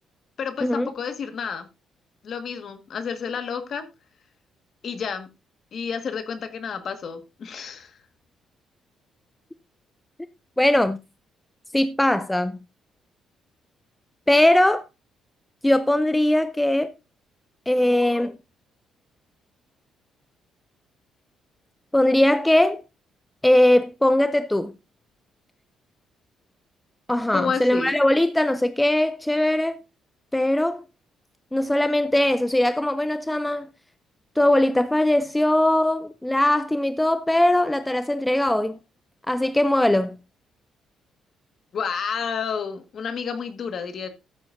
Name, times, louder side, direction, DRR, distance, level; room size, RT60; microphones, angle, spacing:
voice 1, 0.4-1.6 2.2-3.8 4.8-5.3 5.7-8.0 27.3-27.9 41.7-44.1, left 6 dB, 45° left, 1.6 m, -30 dB
voice 2, 10.6-11.0 11.7-12.6 14.3-14.8 15.6-16.9 17.7-18.3 21.9-22.8 23.4-24.7 27.1-29.8 30.3-30.8 31.5-33.7 34.4-38.8 39.3-40.2, left 1 dB, 5° left, 0.4 m, -20 dB
14.5 x 8.0 x 2.6 m
cardioid pair, 160°, 0 cm